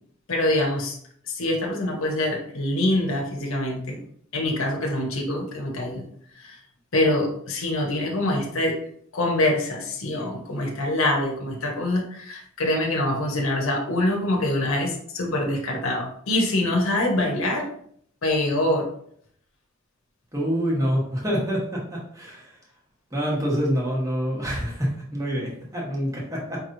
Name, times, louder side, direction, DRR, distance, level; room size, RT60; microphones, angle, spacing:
voice 1, 0.3-1.0 1.3-4.0 4.3-6.0 6.3-6.6 6.9-8.8 9.1-17.7 18.2-18.9, left 1 dB, 70° left, 0 dB, 1.0 m, -25 dB
voice 2, 20.3-22.5 23.1-26.6, equal, 15° right, -4 dB, 1.2 m, -26 dB
5.2 x 3.1 x 2.6 m, 0.64 s
head